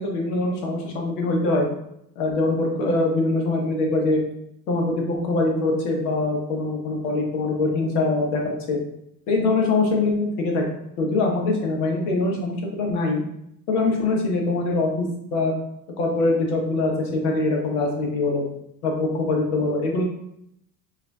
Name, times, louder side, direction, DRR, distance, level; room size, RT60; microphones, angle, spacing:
voice 1, 0.0-1.7 2.2-4.2 4.7-8.8 9.3-10.6 11.0-13.2 13.7-15.5 16.0-18.4 18.8-20.0, left 2 dB, 70° left, 0 dB, 1.2 m, -23 dB
4.7 x 2.6 x 2.3 m, 0.76 s
hypercardioid pair, 90°, 48 cm